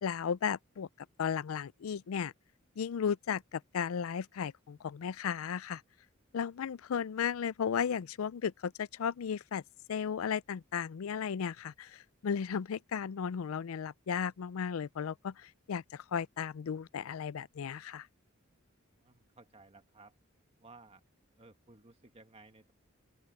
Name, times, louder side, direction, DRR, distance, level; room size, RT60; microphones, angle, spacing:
voice 1, 0.0-0.9 1.2-2.3 2.8-5.8 6.3-9.6 9.9-18.1, left 7 dB, 80° left, 0.4 m, -35 dB
voice 2, 19.0-20.2 20.6-21.0 21.4-22.7, right 3 dB, 30° right, 1.7 m, -57 dB
open air
head